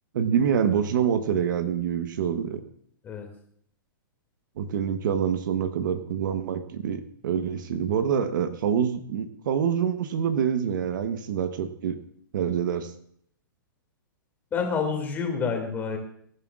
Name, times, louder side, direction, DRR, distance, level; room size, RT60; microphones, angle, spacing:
voice 1, 0.1-2.6 4.6-12.0 12.3-12.9, right 8 dB, 65° right, 10 dB, 1.1 m, -26 dB
voice 2, 14.5-16.0, left 5 dB, 15° left, 2 dB, 2.4 m, -28 dB
23.5 x 11.0 x 2.5 m, 0.66 s
hypercardioid pair, 150°, 12 cm